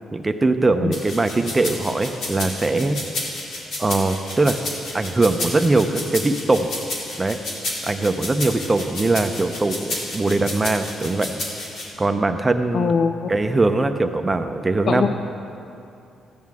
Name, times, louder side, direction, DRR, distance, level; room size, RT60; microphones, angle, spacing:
voice 1, 0.1-3.0 3.8-4.6 4.9-6.7 7.2-7.4 7.8-11.4 12.0-12.9 13.3-15.1, right 2 dB, 20° right, 8 dB, 0.6 m, -21 dB
sound 1, 0.9-11.8, left 2 dB, 75° left, 2.3 m, -31 dB
voice 2, 12.7-13.5 14.9-15.1, left 6 dB, 55° left, 8 dB, 0.4 m, -22 dB
14.0 x 9.4 x 3.6 m, 2.6 s
cardioid pair, 90°, 0 cm